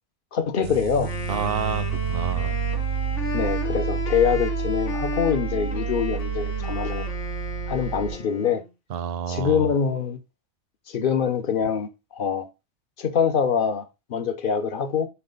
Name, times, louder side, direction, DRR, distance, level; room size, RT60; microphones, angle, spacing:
voice 1, 0.3-1.1 3.3-7.0 7.7-8.6 9.3-10.2 10.9-12.5 13.0-13.8 14.1-15.1, left 7 dB, 50° left, 0.9 m, -24 dB
sound 1, 0.6-8.2, right 8 dB, 85° right, 0.9 m, -29 dB
Wind instrument woodwind instrument, 1.0-8.7, left 5 dB, 90° left, 1.5 m, -34 dB
voice 2, 1.3-2.6 8.9-9.7, right 7 dB, 65° right, 0.7 m, -29 dB
5.8 x 4.6 x 3.9 m
omnidirectional pair, 1.2 m